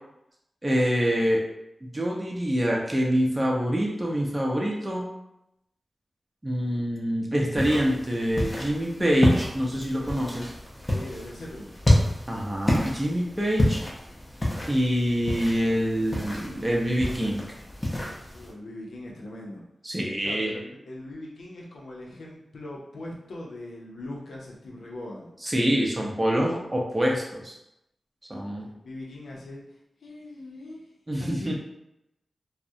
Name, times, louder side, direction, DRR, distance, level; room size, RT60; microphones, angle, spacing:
voice 1, 0.6-1.4 1.8-5.1 6.4-10.5 12.3-13.8 14.7-17.4 19.8-20.6 25.4-27.5 28.3-28.7 31.1-31.5, equal, 25° right, -2 dB, 0.6 m, -25 dB
sound 1, 7.5-18.5, left 1 dB, 35° left, 0.6 m, -29 dB
voice 2, 10.9-11.7 18.3-19.6 20.2-25.3 28.6-29.6 30.0-30.8 31.2-31.5, left 1 dB, 85° left, -3 dB, 0.5 m, -40 dB
2.2 x 2.0 x 2.6 m, 0.85 s
cardioid pair, 45°, 0 cm